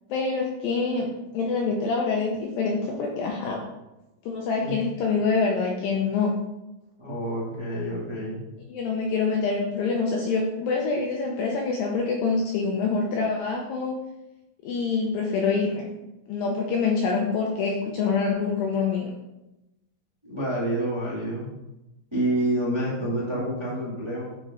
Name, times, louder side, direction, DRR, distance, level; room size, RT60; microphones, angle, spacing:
voice 1, 0.1-3.6 4.3-6.3 8.7-14.0 14.6-15.9 16.3-19.1, left 4 dB, 80° left, 0 dB, 2.1 m, -26 dB
voice 2, 7.0-8.4 20.2-21.4 22.1-24.3, right 1 dB, 25° right, -7 dB, 0.6 m, -28 dB
8.9 x 5.3 x 3.7 m, 0.97 s
omnidirectional pair, 4.9 m